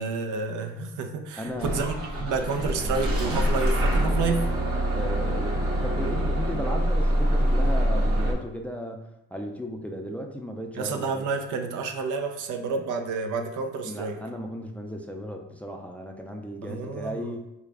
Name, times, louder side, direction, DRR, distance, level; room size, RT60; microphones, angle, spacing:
voice 1, 0.0-4.5 10.7-14.2 16.7-17.3, right 4 dB, 80° right, 5 dB, 0.6 m, -30 dB
voice 2, 1.4-1.8 4.9-11.3 13.8-17.4, equal, 5° left, 3 dB, 0.4 m, -35 dB
Bus / Engine starting, 1.6-8.3, equal, 50° right, 1.0 m, -25 dB
4.0 x 2.3 x 3.3 m, 0.87 s
cardioid pair, 90°, 30 cm